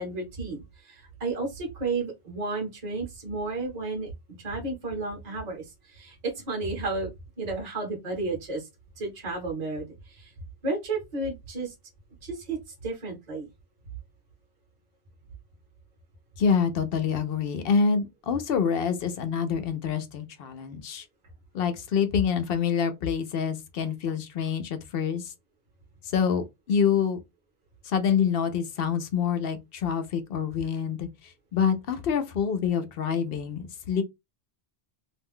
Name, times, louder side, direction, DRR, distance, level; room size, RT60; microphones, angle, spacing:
voice 1, 0.0-4.1 4.4-7.1 7.4-8.7 9.0-10.3 10.6-11.7 12.2-13.5, right 3 dB, 40° right, 1.0 m, -32 dB
voice 2, 16.4-21.1 21.5-25.3 26.0-27.2 27.8-34.0, left 6 dB, 70° left, 0.8 m, -26 dB
2.5 x 2.2 x 3.5 m
omnidirectional pair, 1.1 m